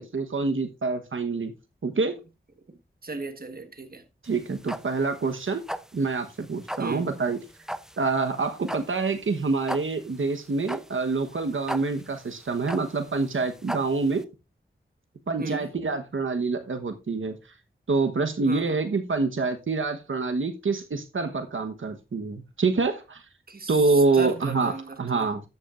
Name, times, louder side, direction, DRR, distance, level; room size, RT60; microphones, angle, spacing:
voice 1, 0.0-1.5 1.8-2.2 4.2-5.6 5.9-7.4 8.0-14.3 15.3-17.4 17.9-23.2 23.7-25.4, right 4 dB, 90° right, 1.2 m, -26 dB
voice 2, 3.0-4.0 6.8-7.1 15.4-15.7 18.5-18.8 23.5-24.9 25.1-25.3, right 3 dB, 50° right, 1.5 m, -35 dB
sound 1, 4.2-14.2, equal, 5° right, 0.6 m, -38 dB
13.5 x 8.6 x 2.5 m
wide cardioid pair, 85°, 20 cm